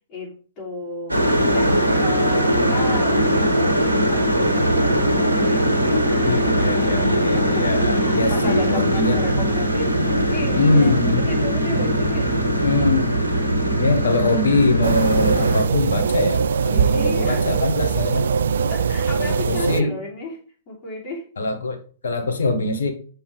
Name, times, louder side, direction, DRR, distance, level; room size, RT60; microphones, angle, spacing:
voice 1, 0.1-1.2 1.5-10.0 10.3-12.9 16.7-17.5 18.7-20.4 20.7-21.3, left 2 dB, 30° left, -4 dB, 3.3 m, -34 dB
sound 1, 1.1-15.6, right 1 dB, 85° right, 1.4 m, -20 dB
voice 2, 6.2-9.2 10.5-11.2 12.6-13.1 13.8-18.3 19.2-19.9 21.4-22.9, left 3 dB, 70° left, 6 dB, 1.5 m, -22 dB
sound 2, 14.8-19.8, right 6 dB, 65° right, 0.4 m, -21 dB
7.2 x 4.5 x 3.5 m, 0.41 s
figure-of-eight pair, 110°, 0 cm